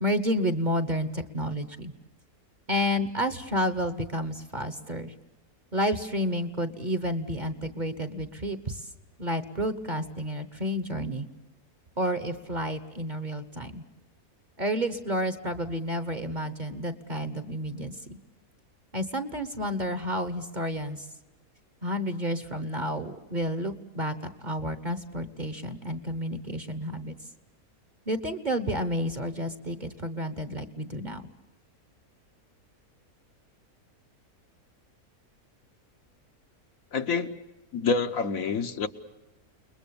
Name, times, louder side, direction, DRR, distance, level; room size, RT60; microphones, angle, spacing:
voice 1, 0.0-1.9 2.7-5.1 5.7-8.9 9.2-11.3 12.0-13.8 14.6-18.2 18.9-21.0 21.8-27.1 28.1-31.3, equal, 35° right, 11 dB, 1.1 m, -30 dB
voice 2, 36.9-37.3 37.7-38.9, left 4 dB, 65° left, 7 dB, 1.4 m, -27 dB
29.5 x 21.0 x 7.0 m, 1.0 s
omnidirectional pair, 1.6 m